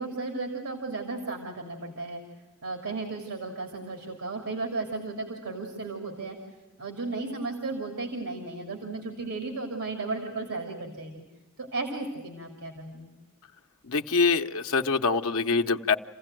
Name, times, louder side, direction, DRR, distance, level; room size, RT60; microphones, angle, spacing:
voice 1, 0.0-2.2 2.6-6.4 6.8-11.2 11.6-13.1, right 3 dB, 80° right, 3 dB, 3.0 m, -34 dB
voice 2, 13.9-16.0, left 4 dB, 70° left, 5 dB, 0.8 m, -24 dB
28.0 x 16.0 x 9.0 m, 1.1 s
head